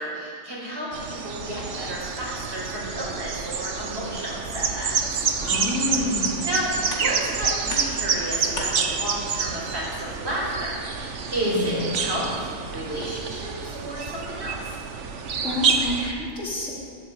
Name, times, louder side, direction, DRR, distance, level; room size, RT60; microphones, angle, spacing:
voice 1, 0.0-5.3 6.4-12.3 12.7-14.8, right 1 dB, 55° right, -5 dB, 5.5 m, -31 dB
sound 1, 0.9-16.1, right 5 dB, 75° right, 1.4 m, -28 dB
voice 2, 5.4-6.4 11.5-11.8 15.4-16.7, left 2 dB, 90° left, -4 dB, 4.3 m, -28 dB
sound 2, 5.9-11.1, left 1 dB, 75° left, 2.7 m, -40 dB
13.0 x 12.0 x 8.8 m, 2.4 s
omnidirectional pair, 1.3 m